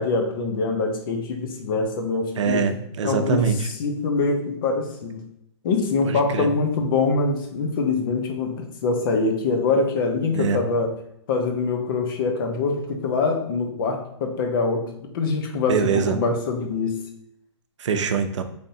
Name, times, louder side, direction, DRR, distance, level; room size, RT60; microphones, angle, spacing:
voice 1, 0.0-2.7 3.0-5.2 5.6-11.0 11.3-17.0, left 4 dB, 50° left, 4 dB, 0.7 m, -24 dB
voice 2, 2.4-3.6 6.1-6.5 10.3-10.6 15.7-16.2 17.8-18.4, right 6 dB, 90° right, 8 dB, 0.5 m, -23 dB
3.5 x 2.6 x 3.9 m, 0.75 s
hypercardioid pair, 155°, 15 cm